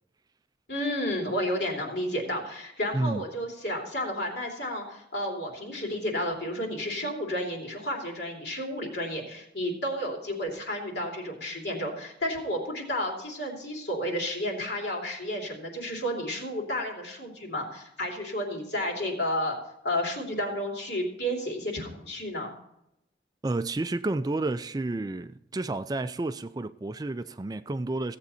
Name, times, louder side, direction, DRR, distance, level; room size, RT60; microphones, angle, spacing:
voice 1, 0.7-19.5 19.8-22.5, equal, 65° left, 3.0 m, -31 dB
voice 2, 23.4-28.2, right 2 dB, 20° right, 0.3 m, -30 dB
16.5 x 7.8 x 4.3 m
head